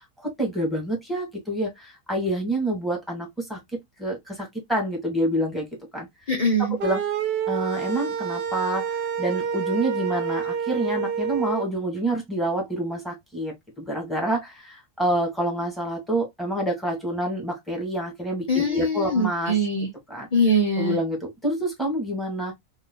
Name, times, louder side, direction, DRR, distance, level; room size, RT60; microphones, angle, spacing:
voice 1, 0.2-3.6 4.0-5.7 5.9-6.1 6.8-7.0 7.5-19.5 20.1-20.3 20.8-22.5, right 1 dB, ahead, 1.7 m, -27 dB
voice 2, 6.3-6.8 18.5-19.9 20.3-21.0, equal, 30° left, 0.9 m, -22 dB
sound 1, 6.8-11.7, right 7 dB, 55° right, 0.7 m, -28 dB
3.9 x 3.0 x 2.3 m
omnidirectional pair, 1.7 m